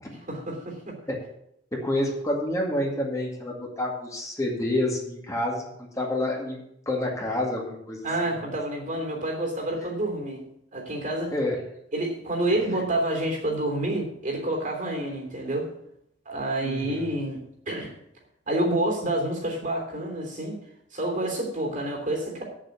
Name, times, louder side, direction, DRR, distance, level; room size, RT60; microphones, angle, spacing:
voice 1, 0.3-1.0 8.0-10.4 10.7-11.3 11.9-15.7 16.2-17.4 17.7-17.9 18.5-20.6 20.9-22.4, right 1 dB, 45° right, 1 dB, 3.2 m, -28 dB
voice 2, 1.7-8.1 11.3-11.6 16.6-17.0, left 1 dB, 20° left, -1 dB, 2.1 m, -28 dB
8.1 x 7.5 x 8.4 m, 0.76 s
head